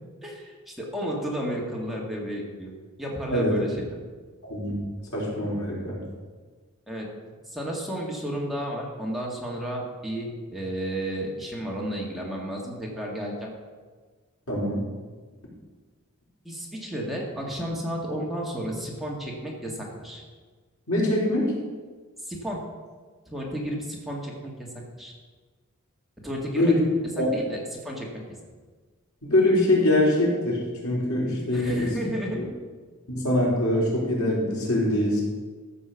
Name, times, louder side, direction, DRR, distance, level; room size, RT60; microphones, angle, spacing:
voice 1, 0.2-2.7 3.0-4.0 6.9-7.1 7.5-13.5 16.5-20.2 22.3-22.6 23.3-24.7 25.0-25.1 26.2-26.7 27.2-28.2 31.5-32.5, equal, ahead, -3 dB, 1.8 m, -32 dB
voice 2, 4.4-4.8 5.1-6.0 14.5-14.8 20.9-21.5 26.5-26.8 27.2-27.3 29.2-32.0 32.3-32.5 33.1-35.2, left 1 dB, 85° left, -5 dB, 4.1 m, -23 dB
13.5 x 5.4 x 7.0 m, 1.4 s
head